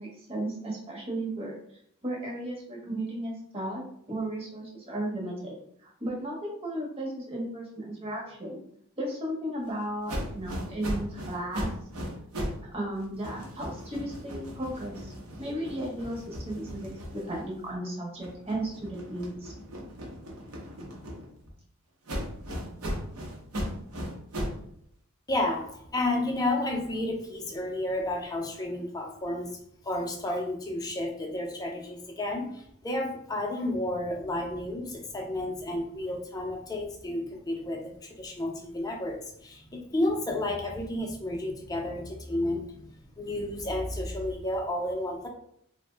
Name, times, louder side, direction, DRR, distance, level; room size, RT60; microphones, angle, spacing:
voice 1, 0.0-8.6 9.0-11.7 12.7-15.1 15.4-19.5, right 1 dB, 25° right, -2 dB, 0.8 m, -35 dB
sound 1, 10.1-12.7 13.0-17.7 18.2-21.5 22.1-24.7, equal, 75° right, 0.7 m, -37 dB
voice 2, 25.3-29.6 29.8-42.8 43.1-45.3, left 1 dB, 15° left, 1 dB, 0.4 m, -31 dB
2.5 x 2.1 x 3.2 m, 0.68 s
head